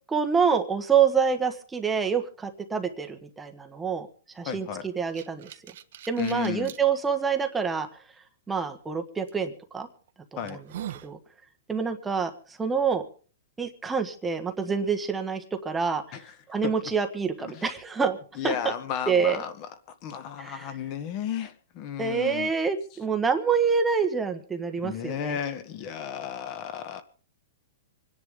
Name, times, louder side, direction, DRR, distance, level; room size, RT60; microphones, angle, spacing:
voice 1, 0.1-4.1 4.3-5.5 6.1-7.9 8.5-9.9 10.3-10.6 11.0-11.2 11.7-13.0 13.6-16.0 16.5-18.2 18.4-18.6 19.1-19.4 20.4-20.7 22.0-25.4, right 6 dB, 10° right, 5 dB, 1.3 m, -26 dB
voice 2, 4.5-4.9 6.2-6.7 10.4-10.6 16.1-16.2 16.6-16.7 17.4-17.7 18.4-19.7 20.0-22.5 24.8-27.0, left 9 dB, 30° left, 10 dB, 1.8 m, -33 dB
sound 1, 4.7-6.8 7.4-7.5 9.3-9.5 10.0-10.1 10.5-11.1, right 11 dB, 55° right, 1.2 m, -41 dB
26.5 x 10.5 x 3.7 m, 0.42 s
hypercardioid pair, 165°, 0 cm